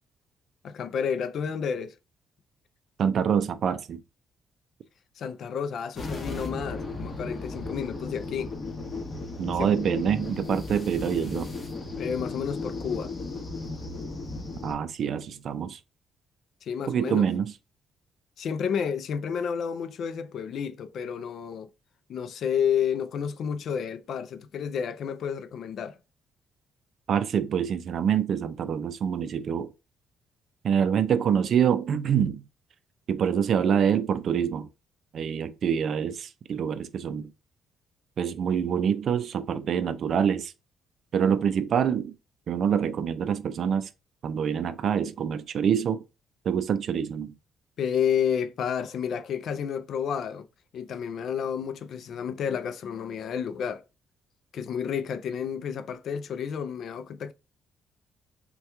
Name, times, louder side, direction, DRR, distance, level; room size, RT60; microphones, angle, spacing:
voice 1, 0.6-1.9 5.2-8.5 9.6-9.7 12.0-13.1 16.6-17.3 18.4-21.7 22.1-26.0 47.8-50.5 50.7-53.8 54.5-57.3, left 7 dB, 65° left, 0.3 m, -30 dB
voice 2, 3.0-4.0 9.4-11.5 14.6-15.8 16.9-17.5 27.1-29.7 30.6-32.4 33.1-34.7 35.1-37.3 38.2-40.5 41.1-42.2 42.5-43.9 44.2-46.0 46.4-47.3, right 8 dB, 60° right, 0.3 m, -26 dB
sound 1, 6.0-14.7, left 3 dB, 30° left, 0.9 m, -35 dB
2.8 x 2.2 x 3.3 m
cardioid pair, 90°, 0 cm